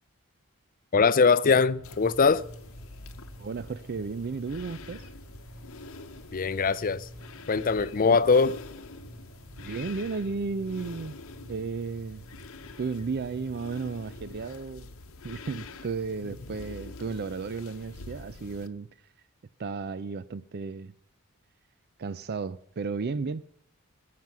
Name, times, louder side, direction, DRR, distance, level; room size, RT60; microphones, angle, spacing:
voice 1, 0.9-2.4 6.3-7.1 7.5-8.5, left 4 dB, 40° left, 0.5 m, -22 dB
sound 1, 1.7-14.5, right 1 dB, 65° right, 3.9 m, -49 dB
sound 2, 1.8-18.7, left 3 dB, 65° left, 0.9 m, -46 dB
voice 2, 3.4-5.1 8.0-8.2 9.6-11.2 11.5-12.2 12.8-14.9 15.2-18.9 19.6-20.9 22.0-23.4, right 4 dB, 45° right, 0.4 m, -34 dB
20.5 x 7.7 x 6.0 m
head